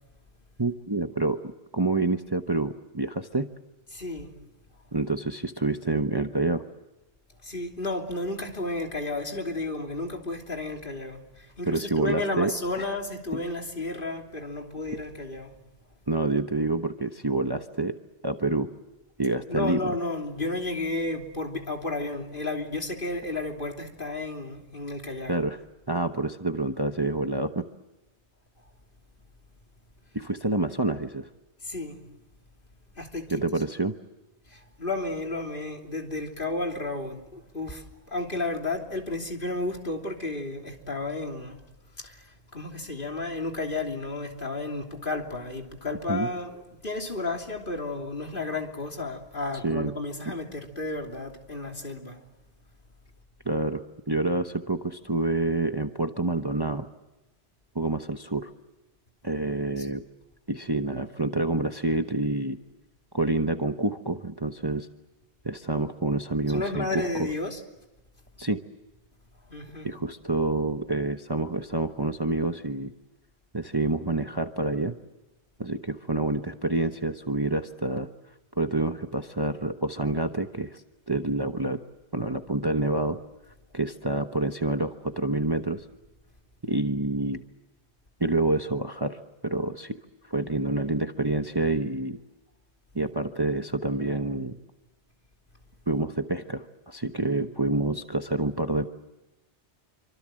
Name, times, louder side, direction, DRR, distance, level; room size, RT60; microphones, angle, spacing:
voice 1, 0.6-3.5 4.9-6.6 11.7-12.5 16.1-18.0 18.2-18.7 19.2-19.9 25.3-25.6 25.9-27.6 30.1-31.3 33.3-33.9 46.1-46.3 49.6-49.9 53.4-53.8 54.1-56.9 57.7-58.5 59.2-60.0 60.5-62.6 63.1-64.9 65.4-67.1 68.4-68.6 69.8-72.9 73.5-75.0 75.6-78.1 78.6-80.8 81.1-81.8 82.1-83.2 83.7-85.8 86.6-87.4 88.2-90.0 90.3-92.2 92.9-94.6 95.9-98.9, right 2 dB, 20° right, 1.0 m, -27 dB
voice 2, 3.9-4.3 7.4-15.5 19.5-25.4 31.6-32.0 32.9-33.6 34.4-41.6 41.9-52.2 59.8-59.9 66.5-67.6 69.5-69.9, left 2 dB, 50° left, 3.3 m, -32 dB
27.5 x 25.5 x 7.8 m
omnidirectional pair, 1.2 m